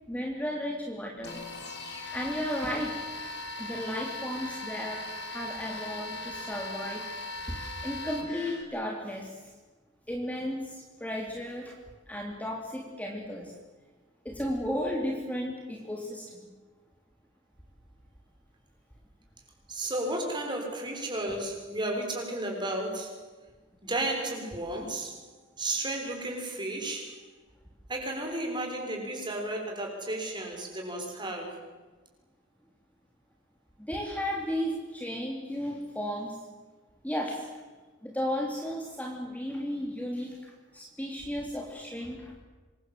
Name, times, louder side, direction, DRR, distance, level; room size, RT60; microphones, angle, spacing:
voice 1, 0.1-1.4 2.1-3.0 3.6-7.0 7.5-7.6 7.8-9.4 10.1-11.7 12.1-13.5 14.2-16.5 33.9-36.3 37.0-37.5 38.0-40.3 40.7-42.4, equal, 10° left, 0 dB, 3.2 m, -34 dB
sound 1, 1.2-8.6, left 2 dB, 55° left, 5.9 m, -39 dB
voice 2, 19.7-23.2 23.8-25.2 25.6-27.2 27.9-31.6, right 1 dB, 25° right, 1 dB, 6.5 m, -33 dB
27.0 x 24.0 x 7.7 m, 1.3 s
head